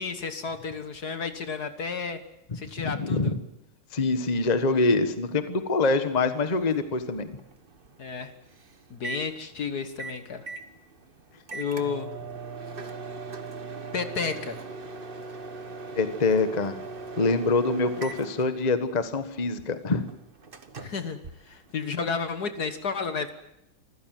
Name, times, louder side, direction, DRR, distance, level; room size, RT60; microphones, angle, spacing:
voice 1, 0.0-2.2 2.5-3.3 8.0-8.3 8.9-10.5 11.5-12.1 13.9-14.6 20.8-21.2 21.4-23.3, left 5 dB, 50° left, 10 dB, 1.8 m, -32 dB
voice 2, 2.8-3.4 3.9-7.3 15.9-16.8 17.2-20.1, left 3 dB, 20° left, 10 dB, 1.4 m, -25 dB
Microwave oven, 6.4-22.1, right 4 dB, 30° right, 1.3 m, -41 dB
26.0 x 15.5 x 9.4 m, 0.84 s
omnidirectional pair, 2.3 m